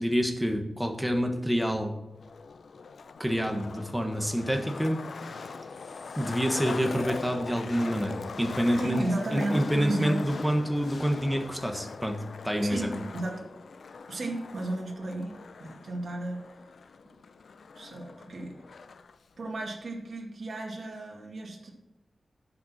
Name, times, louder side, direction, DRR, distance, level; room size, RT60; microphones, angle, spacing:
voice 1, 0.0-2.0 3.2-5.0 6.2-9.0 9.3-12.2 12.4-12.9, equal, ahead, 3 dB, 1.4 m, -27 dB
Skateboard, 2.1-19.2, left 4 dB, 80° left, 0.5 m, -41 dB
sound 1, 4.5-11.6, left 2 dB, 60° left, 1.7 m, -51 dB
voice 2, 8.8-10.3 12.6-13.4 14.1-16.4 17.8-18.7 19.4-21.7, right 2 dB, 65° right, 0 dB, 2.3 m, -34 dB
10.5 x 7.8 x 4.3 m, 0.98 s
wide cardioid pair, 100°, 0 cm